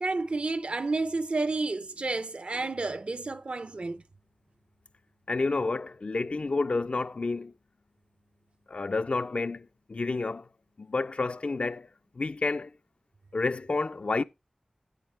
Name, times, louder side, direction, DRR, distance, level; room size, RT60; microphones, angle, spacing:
voice 1, 0.0-4.0, right 3 dB, 60° right, 0.6 m, -30 dB
voice 2, 5.3-7.5 8.7-10.5 10.8-11.9 12.1-12.7 13.3-14.2, left 3 dB, 60° left, 0.4 m, -30 dB
9.5 x 8.8 x 3.2 m
wide cardioid pair, 65°, 2 cm